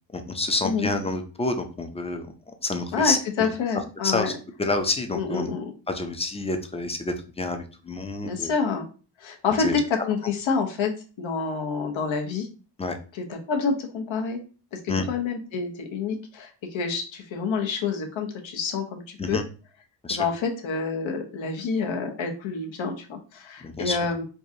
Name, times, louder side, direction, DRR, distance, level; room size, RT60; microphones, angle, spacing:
voice 1, 0.1-2.3 2.6-3.5 4.0-4.3 4.6-5.5 5.9-8.5 9.6-9.8 12.8-13.0 14.9-15.0 19.2-19.4 20.0-20.2 23.6-24.0, left 2 dB, 15° left, 6 dB, 0.3 m, -28 dB
voice 2, 2.9-4.3 5.1-5.7 8.2-8.8 9.2-10.9 11.2-12.5 13.1-14.4 14.7-19.4 20.1-24.2, left 5 dB, 80° left, 3 dB, 0.9 m, -28 dB
4.6 x 2.5 x 2.7 m, 0.36 s
wide cardioid pair, 135°, 46 cm